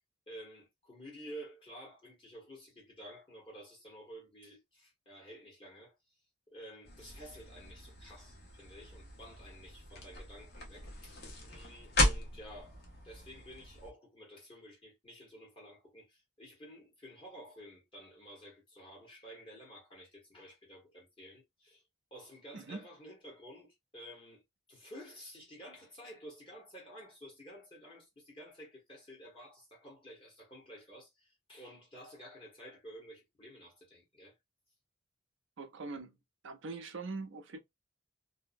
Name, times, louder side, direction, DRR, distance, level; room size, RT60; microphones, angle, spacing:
voice 1, 0.3-5.9 6.5-21.8 22.1-24.4 24.7-34.4, equal, 25° left, 1.0 m, -52 dB
sound 1, 6.8-13.9, left 1 dB, 50° left, 0.8 m, -37 dB
voice 2, 35.6-36.2 36.4-37.6, right 3 dB, 60° right, 0.5 m, -42 dB
2.7 x 2.0 x 2.5 m
head